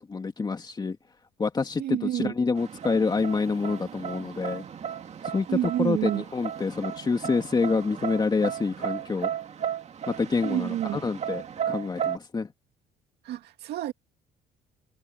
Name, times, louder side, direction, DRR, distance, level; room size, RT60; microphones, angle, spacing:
voice 1, 0.1-1.0 1.4-4.6 5.3-9.3 10.1-12.5, left 4 dB, 25° left, 2.2 m, -27 dB
voice 2, 1.8-2.3 5.5-6.2 10.4-11.0 13.2-13.9, right 13 dB, 75° right, 2.2 m, -28 dB
sound 1, 2.6-12.2, right 9 dB, 40° right, 2.3 m, -35 dB
cardioid pair, 110°, 17 cm